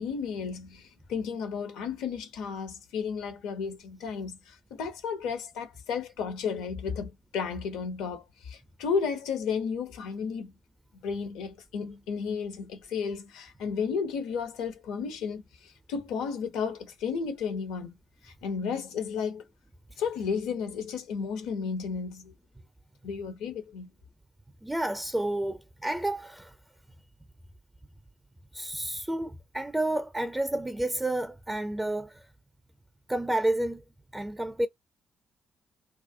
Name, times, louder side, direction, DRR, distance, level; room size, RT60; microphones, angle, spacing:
voice 1, 0.0-10.5 11.0-17.9 18.2-19.4 20.0-22.3 23.0-23.9, left 6 dB, 70° left, 0.5 m, -33 dB
voice 2, 24.6-26.5 28.5-32.3 33.1-33.8 34.1-34.7, right 1 dB, 15° right, 0.5 m, -30 dB
2.3 x 2.0 x 2.6 m
figure-of-eight pair, 40°, 0 cm